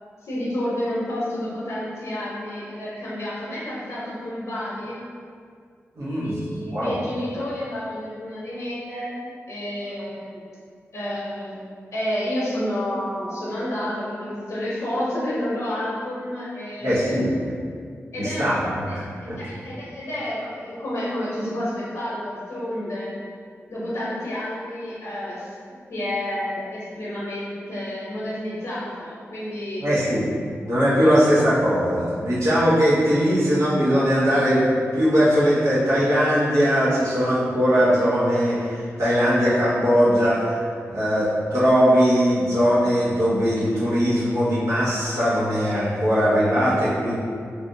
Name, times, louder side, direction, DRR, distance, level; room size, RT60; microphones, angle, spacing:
voice 1, 0.2-5.0 6.2-10.4 10.9-11.6 11.9-17.2 18.1-18.6 18.9-23.1 23.7-25.6 25.9-29.8 31.0-31.3, left 1 dB, 70° left, -8 dB, 0.7 m, -30 dB
voice 2, 6.0-6.4 6.7-7.0 16.8-17.3 18.2-19.4 29.8-30.3 30.6-34.6 34.9-47.2, equal, 85° right, -10 dB, 1.0 m, -20 dB
3.2 x 2.5 x 2.6 m, 2.2 s
wide cardioid pair, 145°, 5 cm